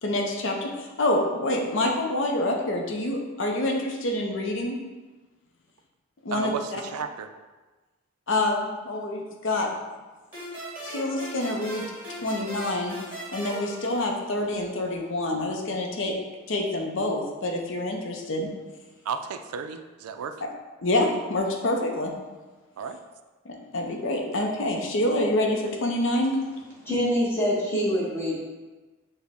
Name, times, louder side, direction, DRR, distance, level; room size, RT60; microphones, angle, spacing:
voice 1, 0.0-4.7 6.2-6.5 8.3-9.7 10.8-11.9 12.2-13.0 13.3-16.1 16.5-18.5 20.8-22.1 23.4-26.3, left 1 dB, 55° left, 1 dB, 0.6 m, -27 dB
voice 2, 6.3-7.3 19.0-20.4 22.8-23.0, right 6 dB, 80° right, 9 dB, 0.3 m, -33 dB
sound 1, 10.3-14.7, right 1 dB, 10° right, 1.3 m, -39 dB
voice 3, 26.8-28.3, equal, 10° left, -6 dB, 0.9 m, -25 dB
6.0 x 2.1 x 3.4 m, 1.3 s
head